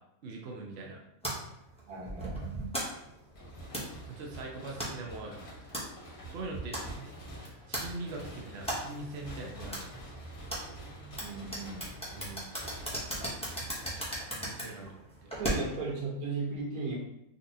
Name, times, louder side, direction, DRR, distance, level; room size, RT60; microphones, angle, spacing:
voice 1, 0.2-1.0 4.1-5.4 6.3-7.1 7.7-10.0 12.1-12.4 14.3-15.3, right 2 dB, 55° right, -1 dB, 0.8 m, -42 dB
sound 1, 1.2-15.9, right 1 dB, 5° left, 0.5 m, -39 dB
voice 2, 1.9-2.5 11.2-11.9 15.4-17.0, right 3 dB, 85° right, -3 dB, 1.4 m, -36 dB
sound 2, 3.3-14.5, equal, 45° left, 0.9 m, -48 dB
4.0 x 2.4 x 2.7 m, 0.81 s
omnidirectional pair, 1.5 m